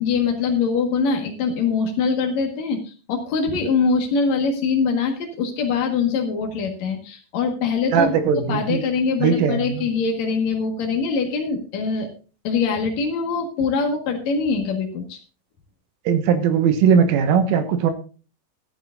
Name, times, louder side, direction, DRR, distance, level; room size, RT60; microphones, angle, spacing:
voice 1, 0.0-12.1 12.4-15.2, left 5 dB, 70° left, 2 dB, 1.7 m, -23 dB
voice 2, 7.9-8.8 9.2-9.7 16.1-17.9, right 7 dB, 80° right, 8 dB, 3.8 m, -19 dB
15.0 x 12.5 x 2.6 m, 0.35 s
omnidirectional pair, 5.9 m